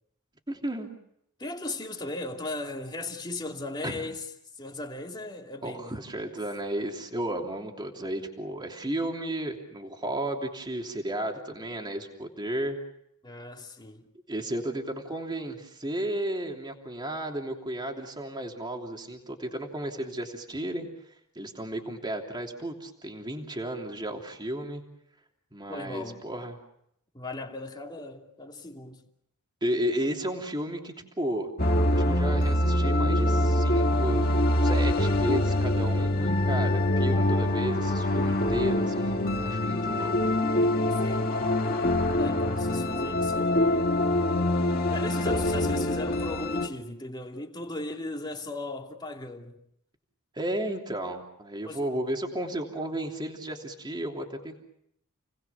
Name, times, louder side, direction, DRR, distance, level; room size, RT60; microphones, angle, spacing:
voice 1, 0.5-0.9 3.8-4.0 5.6-12.8 14.3-20.9 21.3-24.8 25.5-26.6 29.6-31.5 31.9-34.3 34.6-40.3 50.3-54.6, right 1 dB, 20° right, 3.1 m, -33 dB
voice 2, 1.4-4.3 4.6-6.0 13.2-14.1 25.7-26.2 27.1-29.0 41.0-41.4 42.2-43.9 44.9-49.6 51.6-51.8, left 2 dB, 20° left, 2.7 m, -37 dB
sound 1, 31.6-46.7, left 1 dB, 45° left, 1.9 m, -25 dB
30.0 x 20.0 x 7.2 m
head